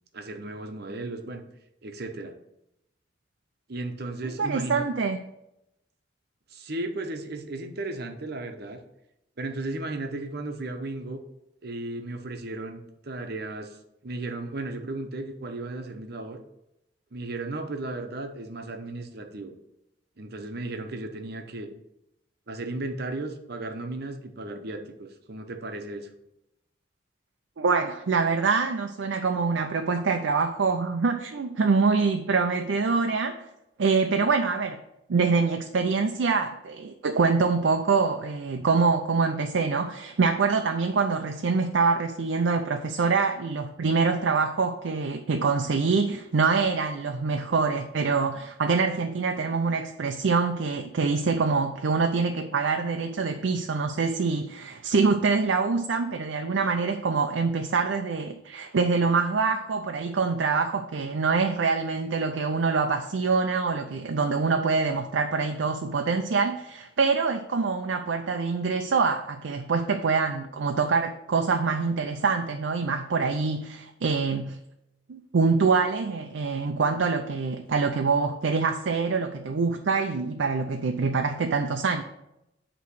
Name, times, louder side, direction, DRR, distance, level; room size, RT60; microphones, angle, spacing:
voice 1, 0.1-1.4 1.8-2.3 3.7-4.8 6.5-8.8 9.4-11.2 11.6-13.8 14.0-16.4 17.1-19.5 20.2-21.8 22.5-26.1, right 2 dB, 60° right, 6 dB, 0.9 m, -35 dB
voice 2, 4.2-5.2 27.6-33.4 33.8-34.8 35.1-74.6 75.1-82.0, right 4 dB, 90° right, 5 dB, 0.5 m, -25 dB
8.3 x 3.1 x 6.2 m, 0.86 s
head